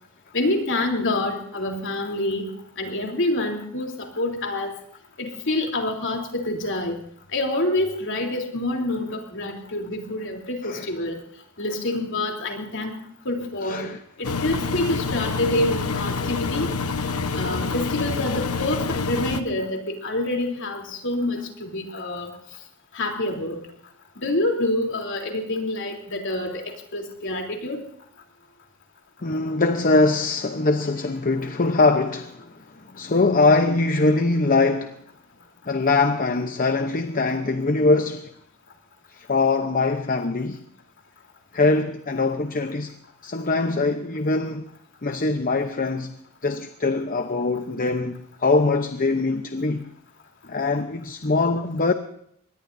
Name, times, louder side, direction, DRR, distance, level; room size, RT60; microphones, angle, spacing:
voice 1, 0.3-2.5 2.8-4.8 5.2-7.0 7.3-11.2 11.6-13.0 13.3-13.9 14.2-16.7 17.4-22.3 22.9-23.6 24.2-27.8, left 2 dB, 55° left, 3.5 m, -27 dB
voice 2, 13.6-14.0 29.2-35.0 35.7-38.3 39.1-40.6 41.5-42.9 43.2-44.7 45.0-46.2 46.4-49.9 50.5-51.9, left 3 dB, 40° left, 0.8 m, -22 dB
Engine, 14.2-19.4, left 4 dB, 75° left, 1.1 m, -27 dB
23.5 x 20.0 x 2.7 m
head